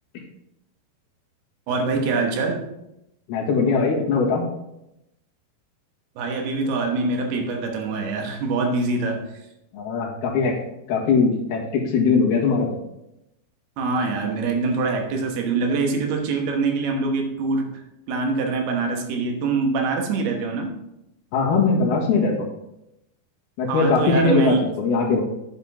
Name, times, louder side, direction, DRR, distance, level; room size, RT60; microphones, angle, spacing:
voice 1, 1.7-2.6 6.2-9.2 13.8-17.8 18.1-20.7 23.7-24.6, right 3 dB, 85° right, 3 dB, 3.3 m, -24 dB
voice 2, 3.3-4.4 9.7-10.5 10.9-12.7 21.3-22.5 23.6-25.2, left 4 dB, 80° left, -2 dB, 3.7 m, -20 dB
9.0 x 8.1 x 3.6 m, 0.85 s
omnidirectional pair, 4.5 m